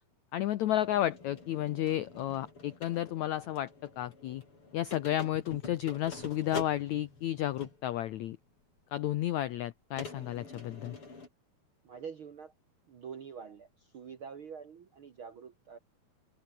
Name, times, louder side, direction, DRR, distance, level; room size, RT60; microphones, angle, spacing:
voice 1, 0.3-3.7 4.0-4.4 4.7-8.4 8.9-11.0, left 13 dB, 90° left, 1.6 m, -32 dB
sound 1, 0.6-8.0 8.8-8.9 10.0-11.3, left 3 dB, 35° left, 6.6 m, -47 dB
voice 2, 11.8-12.5 12.9-15.8, right 6 dB, 65° right, 1.3 m, -46 dB
open air
omnidirectional pair, 4.4 m